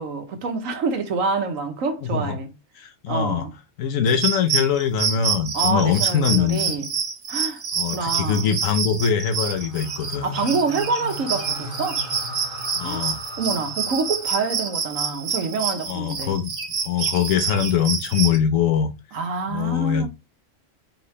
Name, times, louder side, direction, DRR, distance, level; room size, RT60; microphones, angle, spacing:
voice 1, 0.0-2.5 3.1-3.5 5.5-6.9 7.3-7.6 7.9-8.6 10.2-12.0 12.8-16.4 19.1-20.1, right 4 dB, 85° right, 1.3 m, -27 dB
voice 2, 2.0-2.3 2.8-3.5 3.8-6.7 7.8-10.4 12.8-13.2 15.9-16.5 16.8-18.9 19.5-20.1, left 7 dB, 85° left, 1.1 m, -22 dB
sound 1, 4.1-18.4, right 6 dB, 70° right, 1.3 m, -27 dB
sound 2, 9.2-15.5, left 1 dB, 50° left, 1.8 m, -38 dB
4.7 x 3.1 x 3.1 m
omnidirectional pair, 1.3 m